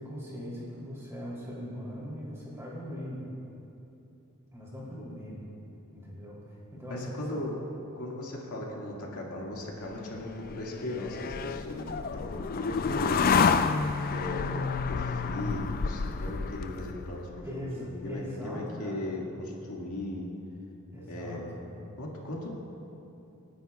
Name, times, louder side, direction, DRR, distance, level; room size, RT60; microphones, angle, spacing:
voice 1, 0.0-3.3 4.5-5.5 5.9-7.5 17.4-19.1 20.9-21.9, equal, 15° right, -6 dB, 3.1 m, -40 dB
voice 2, 6.9-7.5 8.0-13.3 14.1-17.5 17.8-20.3 21.1-21.4 22.0-22.5, left 1 dB, 85° left, -3 dB, 2.0 m, -37 dB
sound 1, 9.9-17.3, left 5 dB, 40° left, 0.4 m, -29 dB
26.5 x 10.5 x 2.4 m, 2.8 s
head